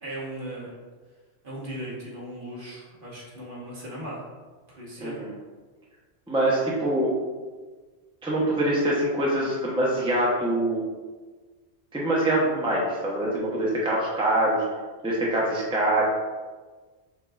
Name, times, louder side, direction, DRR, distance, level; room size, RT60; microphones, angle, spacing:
voice 1, 0.0-0.7 1.4-4.2 4.7-5.2, right 1 dB, 50° right, -5 dB, 1.2 m, -37 dB
voice 2, 5.0-5.3 6.3-7.1 8.2-10.8 11.9-14.6 15.0-16.0, right 1 dB, 5° right, -5 dB, 0.7 m, -24 dB
5.7 x 3.7 x 2.4 m, 1.4 s
omnidirectional pair, 1.2 m